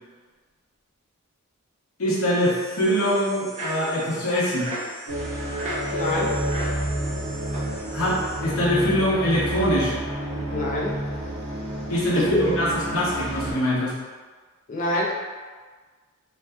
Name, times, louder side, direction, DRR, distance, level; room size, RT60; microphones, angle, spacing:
voice 1, 2.0-4.7 7.9-9.9 11.9-14.0, equal, 70° left, -6 dB, 0.7 m, -23 dB
sound 1, 2.3-8.4, right 1 dB, 30° right, 0.6 m, -36 dB
sound 2, 5.1-13.5, right 1 dB, 80° right, 0.8 m, -30 dB
voice 2, 5.9-6.4 10.5-11.0 12.2-12.6 14.7-15.1, left 2 dB, 35° left, -2 dB, 0.4 m, -25 dB
2.5 x 2.2 x 2.2 m, 1.4 s
head